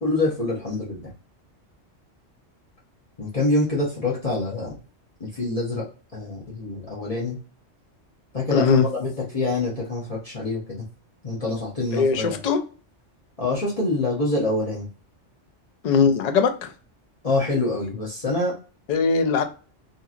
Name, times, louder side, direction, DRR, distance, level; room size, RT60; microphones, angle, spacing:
voice 1, 0.0-1.1 3.2-4.7 5.2-7.4 8.3-10.8 11.2-12.4 13.4-14.9 17.2-18.5, left 2 dB, 35° left, 0.8 m, -26 dB
voice 2, 8.5-8.9 11.9-12.6 15.8-16.7 18.9-19.4, left 5 dB, 70° left, 0.4 m, -20 dB
2.8 x 2.6 x 2.4 m
omnidirectional pair, 1.3 m